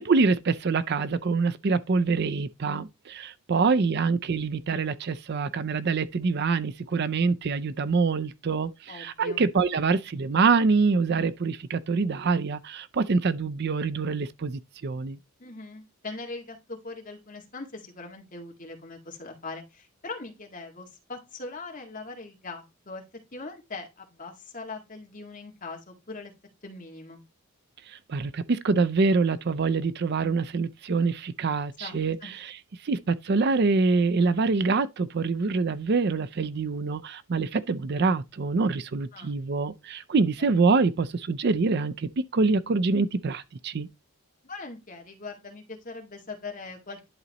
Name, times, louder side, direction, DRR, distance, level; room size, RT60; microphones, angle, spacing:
voice 1, 0.0-15.2 27.9-32.5 32.8-43.9, right 4 dB, 50° right, 0.5 m, -25 dB
voice 2, 8.9-9.4 15.4-23.0 23.3-26.3 26.6-27.2 31.8-32.3 39.1-39.3 40.4-40.5 44.4-47.0, left 3 dB, 35° left, 1.9 m, -41 dB
11.0 x 4.0 x 2.9 m
head